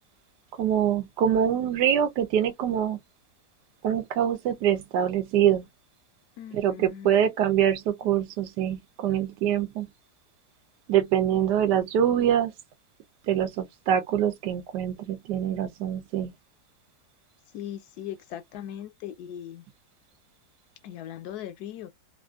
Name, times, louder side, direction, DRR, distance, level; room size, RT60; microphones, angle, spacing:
voice 1, 0.6-3.0 3.8-5.6 6.5-9.9 10.9-12.5 13.3-16.3, right 10 dB, 85° right, 1.3 m, -24 dB
voice 2, 6.4-7.1 17.5-19.6 20.8-21.9, left 11 dB, 75° left, 1.0 m, -39 dB
3.3 x 2.4 x 2.3 m
omnidirectional pair, 1.8 m